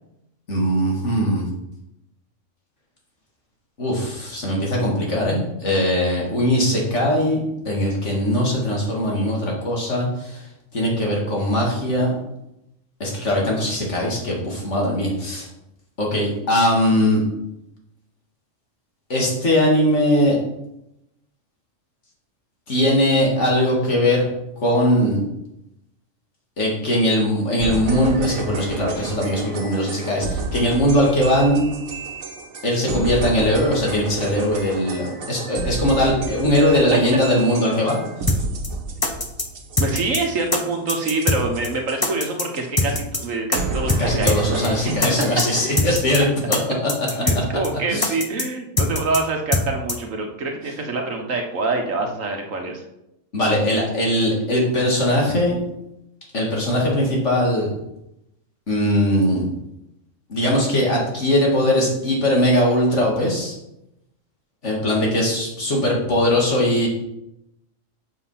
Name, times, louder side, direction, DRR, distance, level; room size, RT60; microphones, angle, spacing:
voice 1, 0.5-1.5 3.8-10.4 10.7-12.2 13.0-15.5 16.0-17.2 19.1-20.4 22.7-24.2 24.6-25.2 26.6-31.6 32.6-38.0 44.0-46.9 47.9-48.1 53.3-55.6 56.3-57.7 58.7-59.5 60.3-63.6 64.6-66.9, left 1 dB, 60° left, -2 dB, 2.7 m, -20 dB
sound 1, 27.6-42.3 42.5-42.6 42.9-43.0 43.2-43.3 43.5-45.9, right 3 dB, 90° right, 1.6 m, -31 dB
sound 2, 38.3-38.4 38.6-38.7 39.0-39.5 39.8-40.2 40.5-40.6 40.9-41.4 41.6-41.7 42.0-42.5 42.8-43.2 43.5-43.6 43.9-44.0 44.3-44.4 44.6-44.7 45.0-45.5 45.8-46.2 46.5-46.6 46.9-47.4 47.6-47.7 48.0-48.5 48.8-49.2 49.5-49.6 49.9-50.0, left 2 dB, 20° left, 0.7 m, -21 dB
voice 2, 39.8-44.9 47.2-52.8, right 3 dB, 70° right, 3 dB, 1.7 m, -26 dB
8.1 x 5.8 x 5.8 m, 0.85 s
omnidirectional pair, 1.4 m